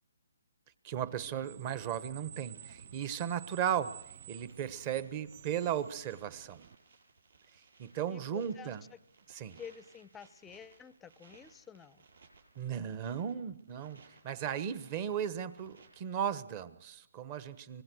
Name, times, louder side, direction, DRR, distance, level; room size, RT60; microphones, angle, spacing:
voice 1, 0.8-3.9 4.3-6.7 7.8-8.8 9.3-9.6 12.6-17.8, right 9 dB, 30° right, 14 dB, 1.2 m, -36 dB
Screech, 0.9-6.8, right 9 dB, 45° right, 0.8 m, -52 dB
sound 1, 2.3-16.3, right 4 dB, 70° right, 7.8 m, -63 dB
voice 2, 8.1-8.7 9.6-12.0, left 7 dB, 10° left, 17 dB, 0.7 m, -50 dB
24.5 x 20.0 x 6.3 m, 0.90 s
hypercardioid pair, 155°, 0 cm